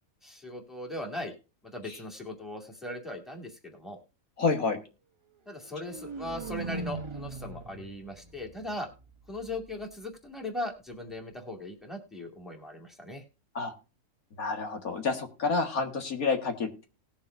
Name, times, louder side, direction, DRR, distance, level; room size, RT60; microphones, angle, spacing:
voice 1, 0.2-1.3 1.7-4.0 5.5-8.9 9.3-13.2, left 1 dB, ahead, 2 dB, 2.2 m, -39 dB
voice 2, 4.4-4.8 13.6-13.7 14.4-16.9, left 4 dB, 75° left, 4 dB, 2.2 m, -29 dB
sound 1, 5.6-9.6, right 3 dB, 25° right, 0.7 m, -40 dB
19.0 x 7.2 x 2.6 m, 0.33 s
omnidirectional pair, 1.5 m